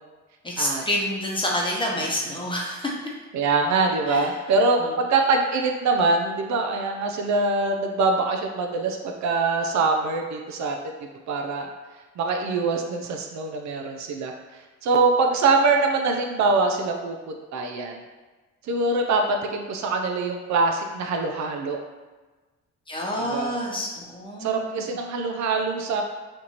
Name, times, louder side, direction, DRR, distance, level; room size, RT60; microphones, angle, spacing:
voice 1, 0.4-3.0 4.1-4.3 4.8-4.9 22.9-24.9, left 1 dB, 15° left, -3 dB, 0.8 m, -28 dB
voice 2, 3.3-11.7 12.2-14.3 14.8-18.0 18.7-21.8 23.2-23.6 24.4-26.0, right 3 dB, 70° right, 3 dB, 0.5 m, -24 dB
4.4 x 2.6 x 2.8 m, 1.2 s
cardioid pair, 90°, 30 cm